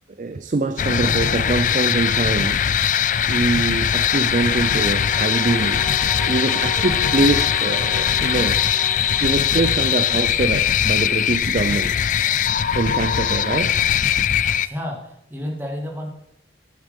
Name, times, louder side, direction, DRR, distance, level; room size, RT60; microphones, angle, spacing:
voice 1, 0.2-2.7 3.2-5.8 6.3-12.1 12.7-13.8, right 3 dB, 45° right, 0.4 m, -24 dB
sound 1, 0.8-14.7, left 9 dB, 45° left, 0.3 m, -20 dB
sound 2, 4.0-10.2, left 2 dB, 15° left, 1.2 m, -33 dB
voice 2, 14.6-16.1, equal, 10° right, 2.0 m, -31 dB
9.8 x 9.5 x 5.2 m
head